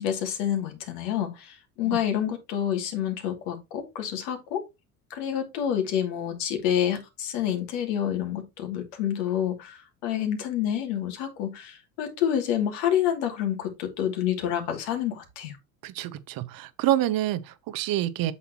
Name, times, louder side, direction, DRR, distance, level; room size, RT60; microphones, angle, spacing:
voice 1, 0.0-4.6 5.1-15.5, left 10 dB, 65° left, 2.8 m, -28 dB
voice 2, 15.8-18.3, right 13 dB, 50° right, 1.0 m, -27 dB
8.2 x 6.8 x 3.0 m
hypercardioid pair, 75°, 44 cm